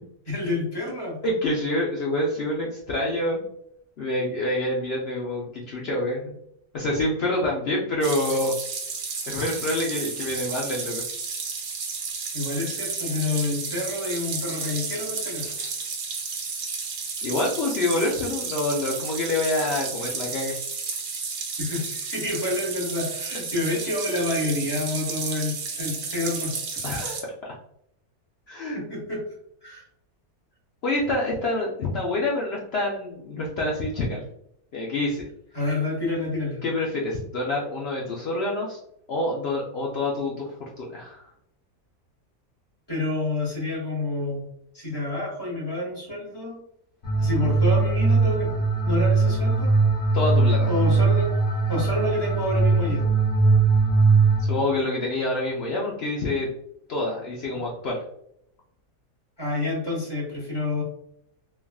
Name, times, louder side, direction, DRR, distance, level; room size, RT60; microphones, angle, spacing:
voice 1, 0.3-1.2 12.3-15.7 21.6-26.6 28.7-29.2 29.6-29.8 35.5-36.6 42.9-44.4 44.7-46.5 47.2-48.5 48.8-49.7 50.7-51.3 51.7-53.0 59.4-60.8, left 2 dB, 20° left, -5 dB, 1.0 m, -28 dB
voice 2, 1.2-3.5 4.0-6.3 6.7-8.5 9.3-11.0 17.2-20.5 26.8-27.5 28.5-28.8 30.8-34.2 34.7-35.2 36.6-38.8 39.1-40.5 40.8-41.3 50.1-50.7 54.4-56.5 56.9-58.0, left 1 dB, 75° left, -3 dB, 0.5 m, -27 dB
sound 1, 8.0-27.2, right 5 dB, 75° right, 1.1 m, -32 dB
sound 2, 47.0-54.5, right 4 dB, 40° left, 1.0 m, -20 dB
3.4 x 2.3 x 2.3 m, 0.73 s
omnidirectional pair, 1.6 m